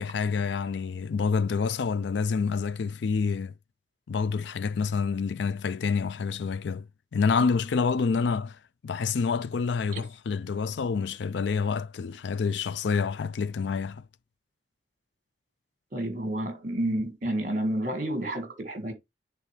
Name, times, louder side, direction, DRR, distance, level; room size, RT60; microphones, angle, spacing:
voice 1, 0.0-3.5 4.1-14.1, left 5 dB, 75° left, 0.4 m, -28 dB
voice 2, 15.9-18.9, right 1 dB, 45° right, 1.7 m, -30 dB
9.7 x 3.8 x 3.2 m
head